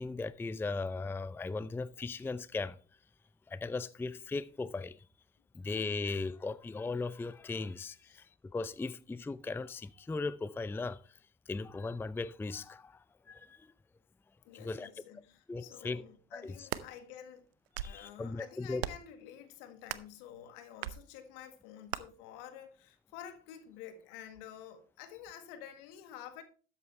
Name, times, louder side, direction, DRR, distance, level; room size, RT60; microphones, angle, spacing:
voice 1, 0.0-2.8 3.5-5.0 5.5-11.2 11.5-13.7 14.5-14.9 15.5-16.0 16.3-16.7 17.8-18.8, left 3 dB, 10° left, 0.4 m, -38 dB
voice 2, 14.4-17.5 17.8-26.4, left 10 dB, 70° left, 1.7 m, -50 dB
sound 1, 16.4-16.9 17.5-18.0 18.8-19.1 19.9-20.2 20.8-21.0 21.9-22.0, right 12 dB, 85° right, 0.6 m, -38 dB
12.5 x 8.4 x 3.2 m
hypercardioid pair, 65°, 29 cm